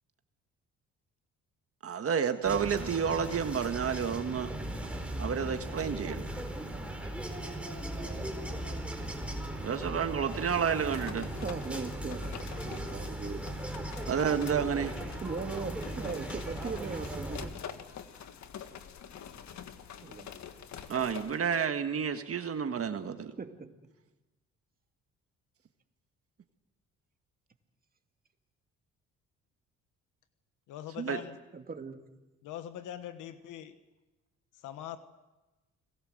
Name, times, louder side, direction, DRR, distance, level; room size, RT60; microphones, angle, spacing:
voice 1, 1.8-4.5 5.2-6.2 9.6-11.3 14.0-14.9 20.9-23.4 31.0-31.2, right 7 dB, 50° right, 8 dB, 1.7 m, -30 dB
sound 1, 2.4-17.5, right 1 dB, 5° right, 4.2 m, -38 dB
sound 2, 10.7-21.5, left 8 dB, 65° left, 1.8 m, -47 dB
voice 2, 11.4-13.5 15.2-17.5 20.0-20.3 23.4-23.7 31.5-32.0, right 4 dB, 30° right, 6 dB, 2.2 m, -39 dB
voice 3, 30.7-31.4 32.4-33.7 34.6-35.0, left 11 dB, 90° left, 10 dB, 1.3 m, -42 dB
29.5 x 20.5 x 7.9 m, 1.1 s
cardioid pair, 90°, 30 cm